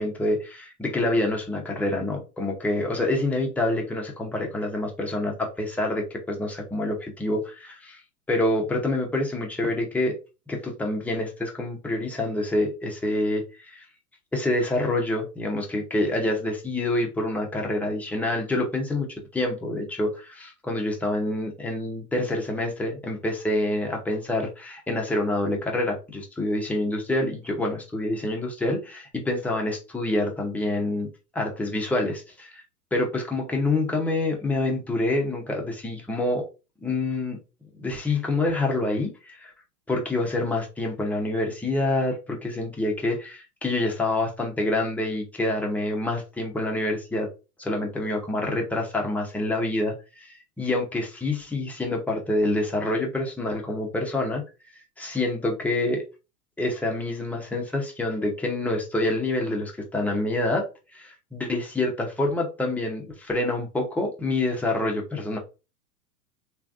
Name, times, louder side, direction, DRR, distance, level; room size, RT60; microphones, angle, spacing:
voice 1, 0.0-8.0 8.3-10.2 10.5-13.8 14.3-31.1 31.3-32.6 32.9-36.4 36.8-37.4 37.8-39.5 39.9-47.3 47.6-54.4 55.0-56.0 56.6-60.7 60.9-65.4, left 2 dB, 5° left, 0 dB, 0.7 m, -27 dB
3.4 x 3.0 x 2.4 m, 0.29 s
figure-of-eight pair, 100°, 46 cm